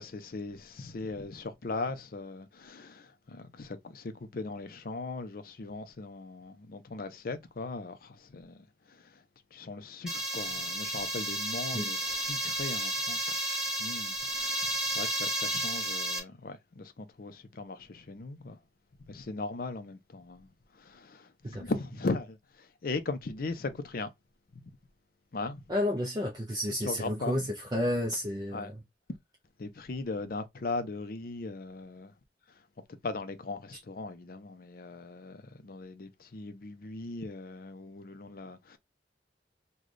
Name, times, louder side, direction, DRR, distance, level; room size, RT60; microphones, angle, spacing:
voice 1, 0.0-9.2 9.5-18.6 19.1-20.5 20.7-24.1 24.6-24.7 25.3-25.6 26.8-27.4 28.5-28.7 29.6-32.1 33.0-38.8, left 3 dB, 55° left, 0.5 m, -39 dB
sound 1, 10.1-16.2, right 1 dB, 5° right, 1.3 m, -32 dB
voice 2, 25.7-28.8, left 1 dB, 25° right, 0.5 m, -31 dB
3.2 x 2.3 x 3.8 m
head